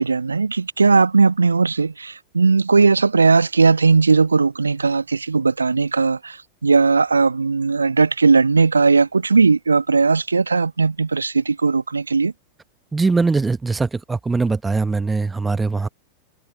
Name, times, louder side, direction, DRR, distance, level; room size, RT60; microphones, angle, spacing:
voice 1, 0.0-6.4 6.6-12.3, right 4 dB, 75° right, 1.3 m, -17 dB
voice 2, 12.9-15.9, right 4 dB, 10° right, 1.2 m, -21 dB
figure-of-eight pair, 90°, 0 cm